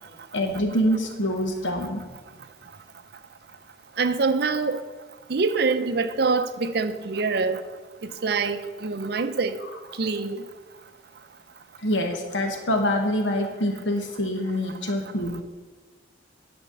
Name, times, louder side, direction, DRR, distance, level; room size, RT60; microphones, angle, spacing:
voice 1, 0.3-2.2 11.8-15.4, equal, 90° left, 1.2 m, -25 dB
voice 2, 4.0-4.8 5.3-7.6 8.0-9.6 10.0-10.4, right 4 dB, 60° right, 0.6 m, -25 dB
10.5 x 4.4 x 6.9 m
head